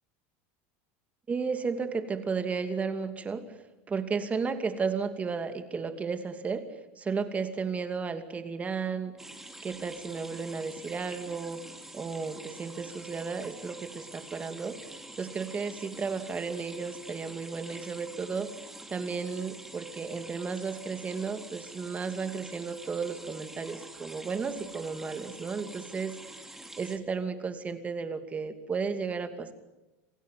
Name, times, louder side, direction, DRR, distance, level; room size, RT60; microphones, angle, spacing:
voice 1, 1.3-3.4 3.9-6.7 7.0-9.2 9.6-11.6 11.9-14.8 15.2-26.4 26.8-29.5, right 5 dB, 20° right, 8 dB, 2.6 m, -33 dB
sound 1, 9.2-27.0, right 1 dB, 5° right, 3.1 m, -47 dB
27.5 x 16.5 x 9.5 m, 1.0 s
supercardioid pair, 130°, 7 cm